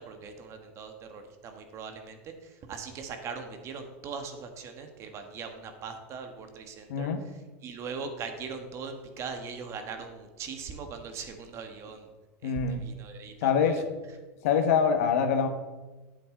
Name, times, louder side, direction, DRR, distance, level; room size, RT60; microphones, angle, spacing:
voice 1, 0.0-12.1 12.4-13.8, right 5 dB, 35° right, 6 dB, 1.4 m, -40 dB
voice 2, 6.9-7.2 12.4-12.8 13.4-13.8 14.4-15.5, left 6 dB, 75° left, 7 dB, 1.2 m, -24 dB
9.8 x 8.7 x 3.8 m, 1.2 s
supercardioid pair, 130°, 8 cm